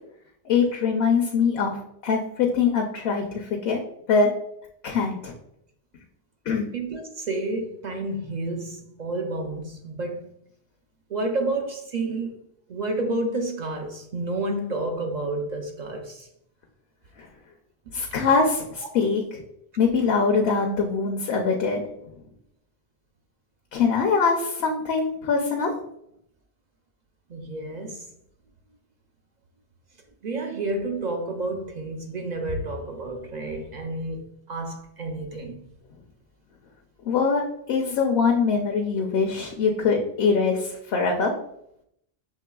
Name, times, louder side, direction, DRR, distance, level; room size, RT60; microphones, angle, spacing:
voice 1, 0.5-1.7 2.0-3.8 4.1-4.3 4.8-5.3 6.5-6.7 17.9-19.2 19.8-21.8 23.7-25.7 37.1-37.4 37.7-41.3, left 5 dB, 70° left, 1 dB, 0.8 m, -23 dB
voice 2, 6.7-10.3 11.1-12.3 12.7-16.3 18.1-18.2 27.3-28.1 30.2-35.7, right 2 dB, 55° right, 4 dB, 0.5 m, -30 dB
6.5 x 3.1 x 2.2 m, 0.75 s
omnidirectional pair, 1.1 m